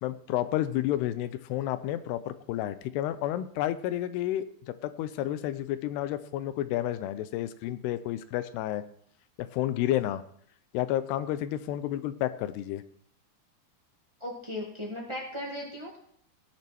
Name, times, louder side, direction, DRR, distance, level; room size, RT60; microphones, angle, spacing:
voice 1, 0.0-8.8 9.4-10.2 10.7-12.8, left 13 dB, 85° left, 14 dB, 2.7 m, -31 dB
voice 2, 14.2-16.0, left 1 dB, 15° right, -2 dB, 0.8 m, -37 dB
18.0 x 6.4 x 4.4 m, 0.67 s
omnidirectional pair, 4.7 m